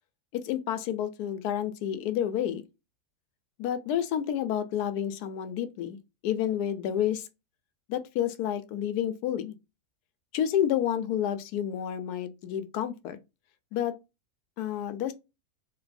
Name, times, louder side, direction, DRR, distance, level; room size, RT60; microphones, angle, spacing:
voice 1, 0.3-2.6 3.6-6.0 6.2-7.3 7.9-9.5 10.3-13.2 13.7-13.9 14.6-15.1, left 10 dB, 85° left, 1.1 m, -29 dB
3.2 x 3.0 x 2.5 m
omnidirectional pair, 1.6 m